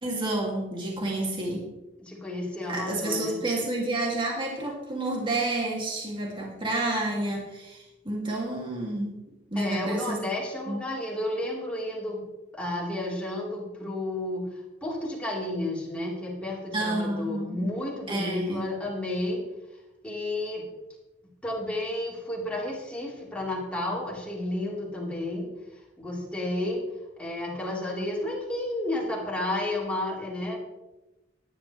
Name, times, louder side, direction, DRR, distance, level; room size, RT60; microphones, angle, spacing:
voice 1, 0.0-1.7 2.7-9.1 9.5-10.2 10.7-10.8 16.7-17.6 18.1-18.6, right 2 dB, 30° right, -2 dB, 2.7 m, -29 dB
voice 2, 2.0-3.4 9.6-12.2 12.5-19.4 20.0-20.7 21.4-25.5 26.0-26.8 27.2-30.6, left 1 dB, 5° left, -4 dB, 4.1 m, -32 dB
17.0 x 11.5 x 3.4 m, 0.99 s
head